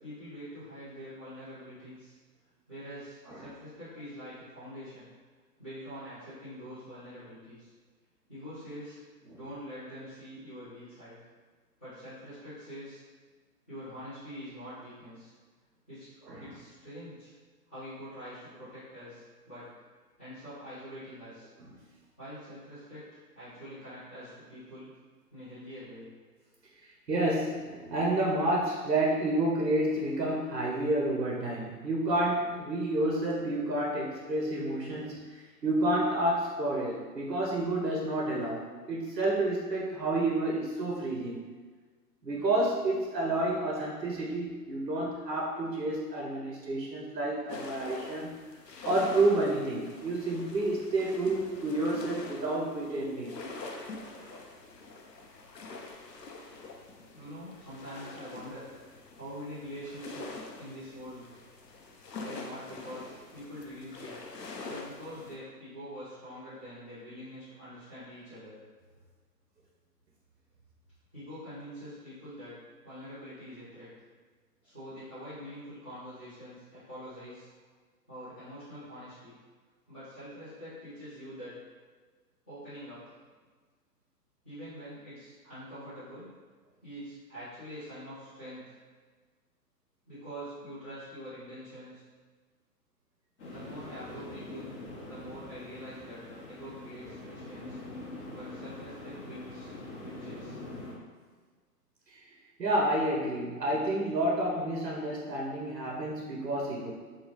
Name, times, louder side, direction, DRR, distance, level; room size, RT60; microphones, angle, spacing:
voice 1, 0.0-2.2 2.7-5.1 5.6-7.7 8.3-9.0 9.3-11.2 11.8-13.0 13.7-15.3 15.9-16.1 16.4-17.3 17.7-19.7 20.2-21.5 22.2-24.9 25.3-26.1 57.1-58.7 59.2-61.3 62.2-64.2 64.7-68.5 71.1-72.5 72.8-73.9 74.6-77.5 78.1-79.3 79.9-81.6 82.5-83.1 84.4-86.3 86.8-88.7 90.1-92.0 93.5-94.7 95.0-97.8 98.3-99.7 100.0-100.6, equal, 10° left, -16 dB, 0.5 m, -45 dB
voice 2, 27.1-41.5 42.2-48.4 48.8-53.4 54.3-54.4 102.1-102.2 102.6-106.9, right 1 dB, 90° right, -2 dB, 0.7 m, -30 dB
sound 1, 47.5-65.4, left 3 dB, 90° left, 0.6 m, -45 dB
sound 2, 93.4-100.9, left 2 dB, 45° left, 1.0 m, -44 dB
3.3 x 2.3 x 3.0 m, 1.5 s
figure-of-eight pair, 125°, 48 cm